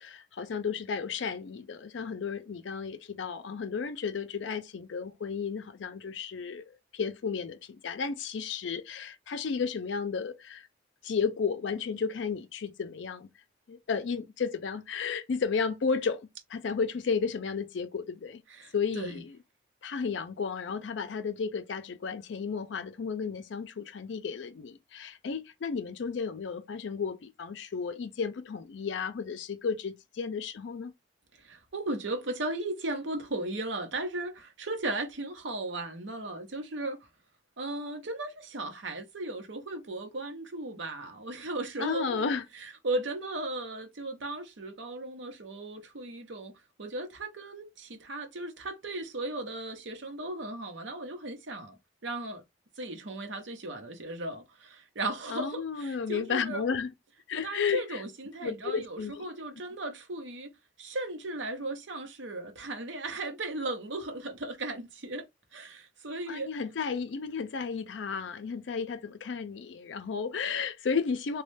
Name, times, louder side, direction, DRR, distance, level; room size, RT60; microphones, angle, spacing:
voice 1, 0.0-10.7 11.0-13.3 13.7-18.4 18.7-19.4 19.8-30.9 41.8-42.4 55.3-56.9 57.3-58.0 58.4-59.3 66.3-71.4, left 5 dB, 70° left, 0.4 m, -33 dB
voice 2, 18.5-19.2 31.4-37.0 37.6-42.3 42.5-46.5 46.8-51.7 52.0-52.4 52.8-56.6 57.4-60.5 60.8-65.2 65.5-66.5, right 2 dB, 75° right, 0.8 m, -36 dB
3.1 x 2.2 x 3.2 m
head